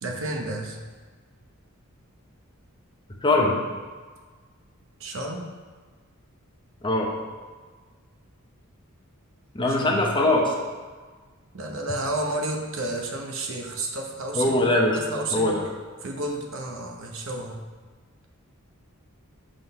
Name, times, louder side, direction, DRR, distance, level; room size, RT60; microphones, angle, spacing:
voice 1, 0.0-0.8 5.0-5.5 9.7-10.0 11.5-14.6 14.9-15.5 16.0-17.6, right 2 dB, 60° right, 2 dB, 0.9 m, -31 dB
voice 2, 3.2-3.6 6.8-7.1 9.5-10.5 14.4-15.0 15.3-15.6, left 2 dB, 20° left, -1 dB, 0.8 m, -21 dB
6.3 x 3.8 x 5.3 m, 1.5 s
head